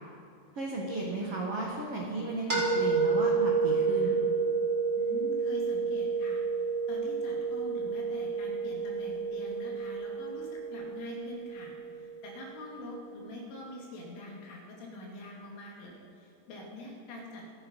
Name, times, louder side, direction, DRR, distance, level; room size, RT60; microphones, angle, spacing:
voice 1, 0.5-4.2, right 2 dB, 85° right, -2 dB, 1.3 m, -34 dB
sound 1, 2.5-12.3, right 4 dB, 25° right, 1.9 m, -30 dB
voice 2, 5.0-6.5 6.9-11.7 12.0-17.4, left 1 dB, 80° left, -2 dB, 5.3 m, -44 dB
26.5 x 9.0 x 5.5 m, 2.7 s
omnidirectional pair, 5.6 m